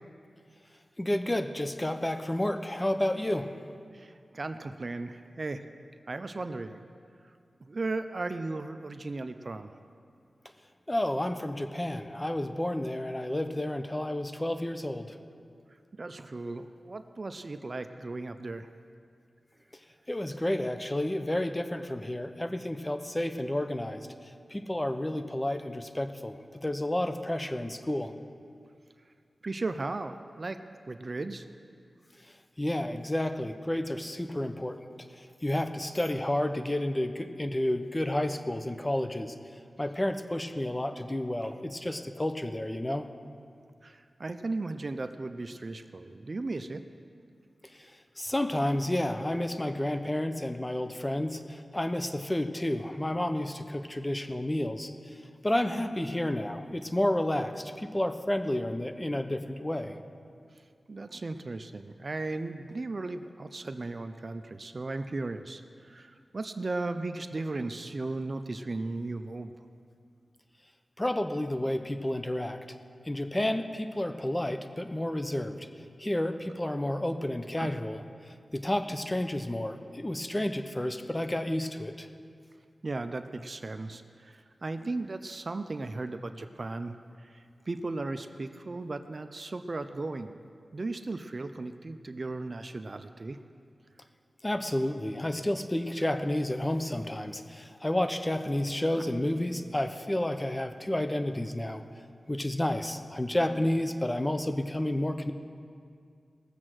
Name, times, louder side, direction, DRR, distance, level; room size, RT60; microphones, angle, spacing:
voice 1, 1.0-3.6 10.9-15.2 20.1-24.1 24.5-28.1 32.6-34.8 35.4-39.3 39.8-43.1 47.7-47.9 48.2-55.2 55.4-60.0 71.0-72.6 73.0-75.7 76.0-78.0 78.5-82.1 94.4-101.8 102.3-105.3, left 1 dB, 20° left, 8 dB, 0.9 m, -31 dB
voice 2, 3.9-5.6 6.1-6.8 7.7-9.7 16.0-18.7 29.4-31.5 43.8-46.8 60.9-69.5 77.6-77.7 82.8-90.4 90.7-93.4, right 2 dB, 50° right, 9 dB, 0.6 m, -36 dB
18.5 x 7.5 x 6.3 m, 2.3 s
cardioid pair, 50°, 0 cm